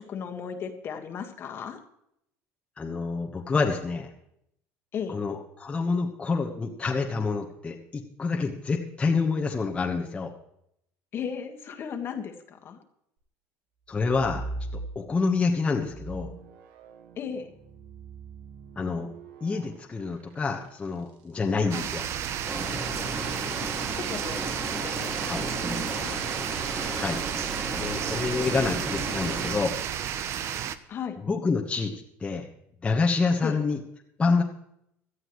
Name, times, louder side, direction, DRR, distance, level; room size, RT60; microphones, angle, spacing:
voice 1, 0.0-1.8 4.9-5.2 11.1-12.8 17.2-17.5 21.7-21.9 23.6-26.2 30.9-31.2 33.4-33.6, left 7 dB, 40° left, 4 dB, 1.7 m, -36 dB
voice 2, 2.8-4.1 5.1-10.3 13.9-14.4 14.9-16.3 18.8-19.1 19.4-22.0 25.2-25.5 26.7-27.2 27.7-29.7 31.2-32.5 32.8-33.8 34.2-34.4, left 4 dB, 20° left, 1 dB, 1.3 m, -27 dB
sound 1, 13.9-15.3 15.8-21.3 22.8-23.2, right 2 dB, 85° right, 1.6 m, -41 dB
sound 2, 21.7-30.8, right 10 dB, 50° right, 0.8 m, -32 dB
sound 3, 22.4-29.5, right 2 dB, 25° right, 3.2 m, -34 dB
17.5 x 12.5 x 3.2 m, 0.76 s
cardioid pair, 125°, 6 cm